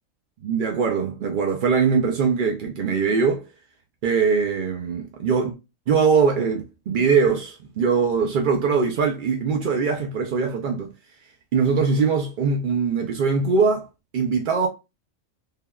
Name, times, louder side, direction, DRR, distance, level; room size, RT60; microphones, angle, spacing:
voice 1, 0.4-3.5 4.0-5.5 5.9-10.9 11.5-13.9 14.1-14.7, right 5 dB, 65° right, 0.5 m, -21 dB
3.3 x 2.2 x 2.3 m
omnidirectional pair, 1.4 m